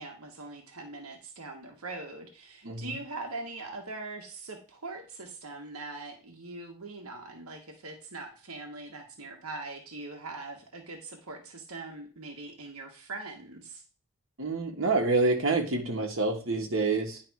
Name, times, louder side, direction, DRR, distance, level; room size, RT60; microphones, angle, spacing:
voice 1, 0.0-13.8, right 3 dB, 85° right, 2 dB, 1.3 m, -42 dB
voice 2, 2.6-3.0 14.4-17.2, right 3 dB, 70° right, 1 dB, 1.4 m, -27 dB
10.0 x 3.4 x 4.6 m, 0.37 s
head